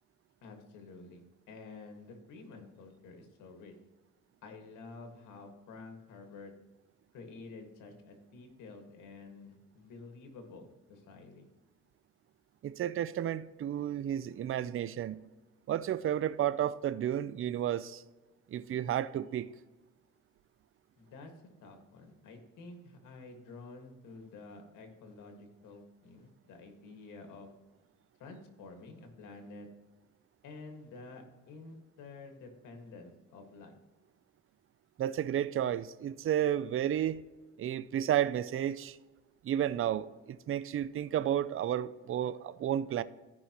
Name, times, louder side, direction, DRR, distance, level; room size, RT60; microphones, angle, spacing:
voice 1, 0.4-3.8 4.4-6.5 7.1-11.5 21.0-21.3 21.6-27.5 28.2-29.7 30.4-33.7, left 3 dB, 90° left, 1.8 m, -50 dB
voice 2, 12.6-15.2 15.7-18.0 18.5-19.5 35.0-37.2 37.6-39.0 39.4-43.0, right 11 dB, 45° right, 0.5 m, -32 dB
14.5 x 5.5 x 3.0 m
cardioid pair, 90°, 30 cm